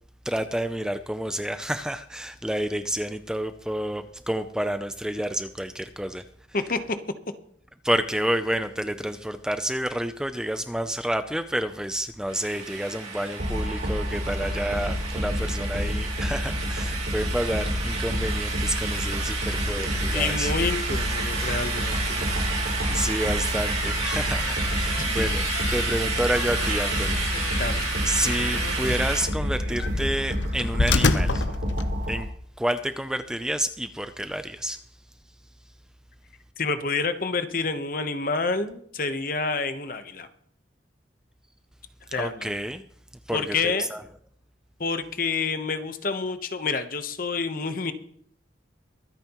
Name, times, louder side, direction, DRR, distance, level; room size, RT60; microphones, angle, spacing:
voice 1, 0.2-6.2 7.8-20.5 22.9-27.6 28.0-31.5 32.1-32.3 32.6-34.8 42.2-42.8 43.3-44.0, right 1 dB, 5° right, 9 dB, 0.4 m, -29 dB
voice 2, 6.5-7.0 19.6-22.2 25.0-25.3 27.6-27.8 36.6-40.3 42.1-42.5 43.3-43.9 44.8-47.9, left 4 dB, 50° left, 9 dB, 1.0 m, -28 dB
sound 1, 12.3-29.2, right 4 dB, 35° right, 2.8 m, -31 dB
sound 2, 13.4-32.2, equal, 80° right, 5.1 m, -29 dB
sound 3, 23.5-32.3, left 3 dB, 80° left, 0.8 m, -30 dB
23.5 x 9.2 x 3.0 m, 0.63 s
head